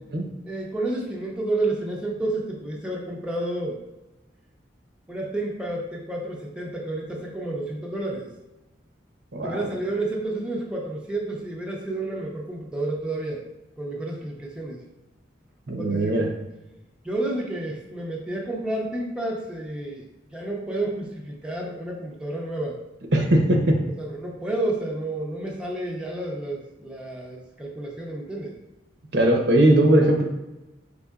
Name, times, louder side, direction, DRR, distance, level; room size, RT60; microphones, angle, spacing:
voice 1, 0.4-3.8 5.1-8.3 9.4-13.4 13.8-14.8 15.8-16.3 17.0-20.0 20.3-22.8 24.0-28.5, right 2 dB, 5° right, -3 dB, 0.6 m, -30 dB
voice 2, 9.3-9.7 15.7-16.3 23.1-23.8 29.1-30.2, right 1 dB, 70° right, 2 dB, 0.8 m, -19 dB
5.4 x 3.6 x 2.4 m, 0.99 s
head